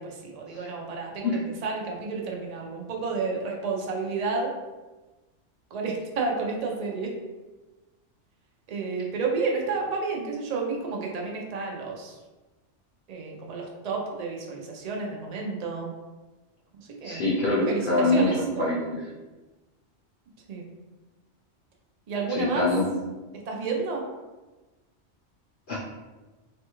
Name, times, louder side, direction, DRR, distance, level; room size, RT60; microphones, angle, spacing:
voice 1, 0.0-4.5 5.7-7.1 8.7-12.2 13.1-15.9 16.8-17.2 17.7-18.6 20.5-20.7 22.1-22.7 23.5-24.0, right 4 dB, 50° right, -1 dB, 0.5 m, -31 dB
voice 2, 17.0-18.3 18.6-19.0 22.3-22.9 25.7-25.8, left 2 dB, 55° left, -5 dB, 0.7 m, -24 dB
3.4 x 2.3 x 2.9 m, 1.2 s
omnidirectional pair, 1.2 m